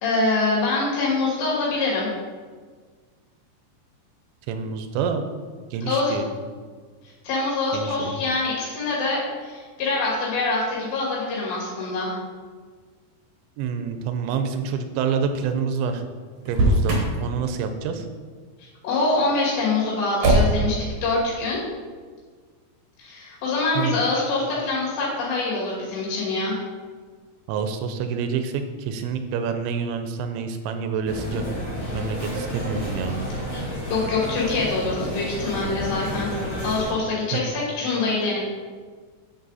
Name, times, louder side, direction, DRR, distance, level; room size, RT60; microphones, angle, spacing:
voice 1, 0.0-2.1 5.9-6.2 7.2-12.2 18.6-21.6 23.0-26.5 33.9-36.3 36.6-38.4, left 3 dB, 75° left, -6 dB, 4.5 m, -25 dB
voice 2, 4.5-5.2 5.7-6.3 7.7-8.2 13.6-16.0 16.5-18.1 23.8-24.0 27.5-31.4 31.8-33.2 37.3-37.4, right 6 dB, 90° right, 8 dB, 3.0 m, -27 dB
Motor vehicle (road), 16.4-17.2 20.2-20.8, right 1 dB, 65° right, 1.6 m, -19 dB
sound 1, 31.0-36.9, equal, 30° left, 1.7 m, -31 dB
10.0 x 4.0 x 4.1 m, 1.5 s
omnidirectional pair, 5.1 m